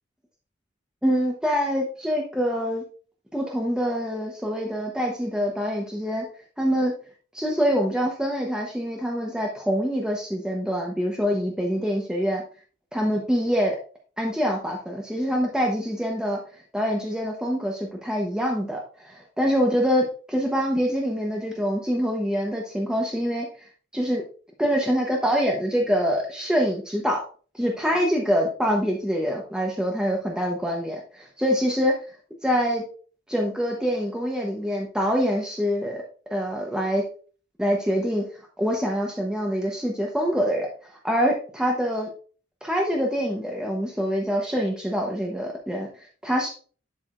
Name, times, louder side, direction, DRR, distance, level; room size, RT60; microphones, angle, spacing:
voice 1, 1.0-2.8 3.3-6.3 6.6-6.9 7.3-12.4 12.9-13.8 14.2-23.5 23.9-24.2 24.6-27.2 27.5-32.0 32.4-32.8 33.3-36.0 36.3-37.0 37.6-38.3 38.6-42.1 42.6-46.5, equal, 5° right, -1 dB, 0.9 m, -25 dB
11.0 x 4.9 x 2.5 m, 0.40 s
head